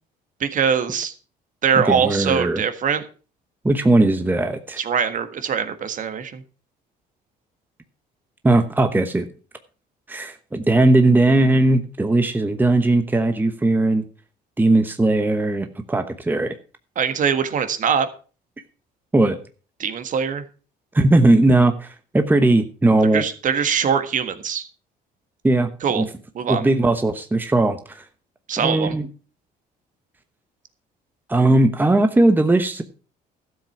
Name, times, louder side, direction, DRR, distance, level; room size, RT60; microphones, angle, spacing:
voice 1, 0.4-1.1 1.6-3.0 4.8-6.4 16.9-18.1 19.8-20.4 23.1-24.7 25.8-26.0 26.3-26.7 28.5-29.0, right 7 dB, 50° right, 10 dB, 1.6 m, -22 dB
voice 2, 1.7-2.6 3.6-4.8 8.4-9.3 10.1-14.0 14.6-16.5 19.1-19.4 20.9-23.2 25.4-25.7 26.0-26.1 26.5-28.0 28.6-29.1 31.3-32.8, right 2 dB, 10° right, 8 dB, 1.0 m, -18 dB
12.5 x 7.6 x 5.9 m, 0.37 s
cardioid pair, 110°, 17 cm